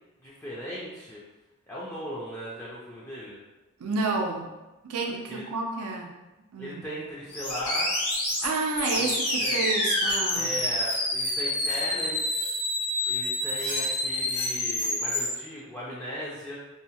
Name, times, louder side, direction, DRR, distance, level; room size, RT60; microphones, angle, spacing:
voice 1, 0.2-1.2 1.7-3.4 5.3-5.4 6.6-7.9 8.9-9.7 10.3-12.5 13.1-16.6, equal, 10° left, -8 dB, 0.3 m, -37 dB
voice 2, 3.8-4.5 4.9-6.1 6.5-6.9 8.4-10.6, right 3 dB, 85° right, 1 dB, 0.5 m, -30 dB
sound 1, 7.3-15.3, left 1 dB, 90° left, 1.1 m, -28 dB
2.7 x 2.0 x 2.8 m, 1.1 s
head